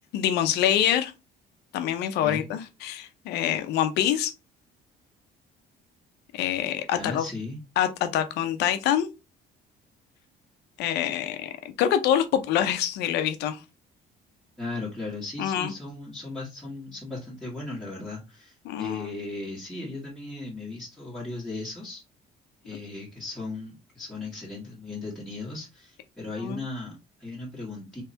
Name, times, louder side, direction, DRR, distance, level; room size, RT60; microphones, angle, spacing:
voice 1, 0.1-1.1 1.7-4.3 6.3-7.2 7.8-9.1 10.8-13.6 15.4-15.7 18.6-19.1 26.4-26.6, left 10 dB, 85° left, 0.7 m, -25 dB
voice 2, 2.2-2.6 6.9-7.6 14.6-22.0 22.6-28.0, left 3 dB, 5° left, 1.5 m, -37 dB
3.4 x 3.2 x 2.8 m
cardioid pair, 110°, 17 cm